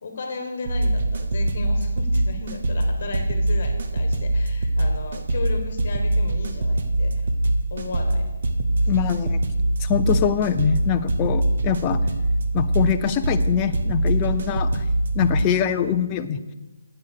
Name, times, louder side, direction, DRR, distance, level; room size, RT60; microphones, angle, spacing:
voice 1, 0.0-7.3 7.7-8.3 8.8-9.1, left 4 dB, 40° left, 5 dB, 1.4 m, -35 dB
sound 1, 0.7-15.4, right 1 dB, 40° right, 0.7 m, -23 dB
voice 2, 8.9-9.4 9.8-12.0 12.5-14.8 15.1-16.5, left 8 dB, 15° left, 7 dB, 0.4 m, -23 dB
8.7 x 8.3 x 6.6 m, 1.1 s
hypercardioid pair, 175°, 0 cm